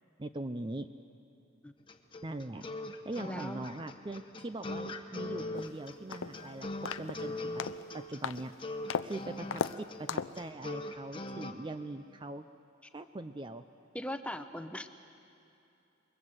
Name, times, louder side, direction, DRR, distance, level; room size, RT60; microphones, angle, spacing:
voice 1, 0.2-0.9 2.2-2.7 3.0-6.7 7.0-7.6 7.9-8.5 8.8-12.4 12.9-13.6, right 2 dB, 25° right, 9 dB, 0.5 m, -41 dB
sound 1, 1.9-11.5, left 2 dB, 25° left, 1.2 m, -41 dB
voice 2, 3.3-3.7 13.9-14.9, left 1 dB, 5° left, 8 dB, 0.8 m, -39 dB
sound 2, 5.6-5.7 6.1-6.5 6.9-7.2 7.6-7.8 8.2-8.5 8.9-9.1 9.5-9.8 10.1-10.4, left 6 dB, 85° left, 0.6 m, -35 dB
27.5 x 22.0 x 8.0 m, 2.7 s
head